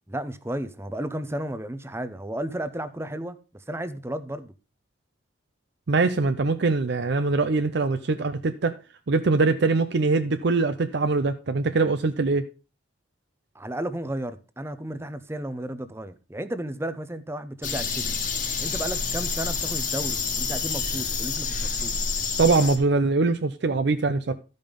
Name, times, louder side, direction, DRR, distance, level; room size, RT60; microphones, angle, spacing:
voice 1, 0.1-3.4 3.7-4.5 13.5-18.0 18.6-21.9, right 1 dB, 10° right, 0.6 m, -33 dB
voice 2, 5.9-8.8 9.1-12.5 22.4-24.3, right 3 dB, 55° right, 0.5 m, -23 dB
sound 1, 17.6-22.8, left 5 dB, 40° left, 1.4 m, -28 dB
12.5 x 5.4 x 5.1 m
head